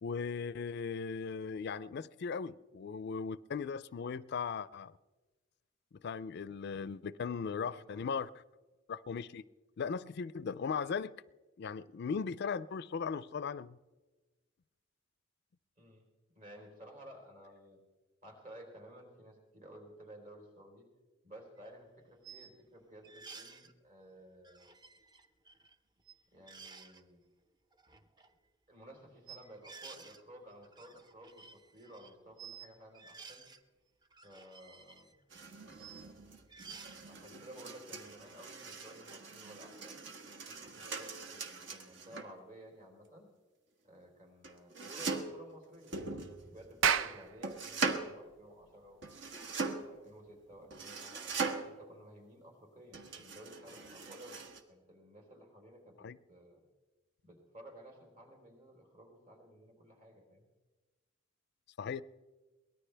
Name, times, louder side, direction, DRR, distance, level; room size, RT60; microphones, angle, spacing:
voice 1, 0.0-4.9 6.0-8.3 8.9-9.4 9.8-11.2 11.6-13.8 56.0-56.2 61.8-62.0, left 5 dB, 60° left, 0.4 m, -38 dB
voice 2, 7.4-8.0 15.8-16.0 16.3-17.8 18.2-20.9 21.2-24.7 26.3-27.2 28.2-28.4 28.7-33.5 34.2-35.1 37.1-40.1 40.5-43.3 43.8-49.0 49.8-51.3 51.6-54.4 54.7-56.6 57.2-60.4, equal, 45° right, 4.0 m, -54 dB
sound 1, 21.6-21.7 22.2-22.5 23.0-23.7 24.4-25.7 26.0-26.2 26.5-27.0 27.7-28.3 29.3-30.2 30.5-32.7 32.9-33.6 34.0-36.1 36.5-37.0, right 5 dB, 20° right, 0.7 m, -53 dB
sound 2, 35.3-42.3 44.4-45.4 45.9-46.8 47.4-48.1 49.0-50.0 50.7-51.9 52.9-54.6, right 4 dB, 65° right, 1.4 m, -41 dB
Clapping, 46.7-51.5, right 7 dB, 85° right, 0.7 m, -36 dB
23.0 x 18.5 x 3.4 m
head